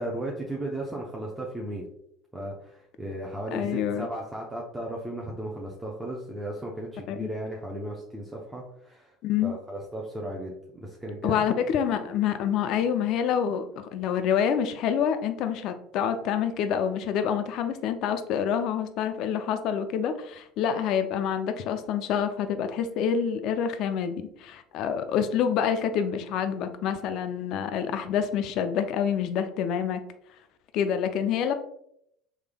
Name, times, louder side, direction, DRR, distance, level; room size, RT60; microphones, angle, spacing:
voice 1, 0.0-1.9 2.3-9.1 9.4-11.4, right 1 dB, 10° right, -3 dB, 0.7 m, -35 dB
voice 2, 3.5-4.1 7.1-7.3 9.2-9.6 11.2-30.0 30.7-31.5, left 8 dB, 65° left, 9 dB, 0.4 m, -27 dB
3.5 x 3.2 x 2.2 m, 0.73 s
supercardioid pair, 85°, 0 cm